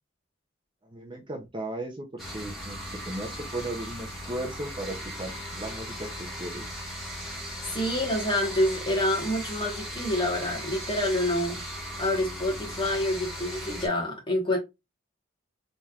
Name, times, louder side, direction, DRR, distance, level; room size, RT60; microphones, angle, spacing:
voice 1, 0.9-2.8 3.0-6.9, right 1 dB, 25° right, 0.5 m, -36 dB
sound 1, 2.2-13.9, equal, ahead, 1.4 m, -37 dB
voice 2, 7.7-11.6 12.0-14.6, left 1 dB, 25° left, 1.3 m, -27 dB
4.2 x 3.2 x 2.4 m
head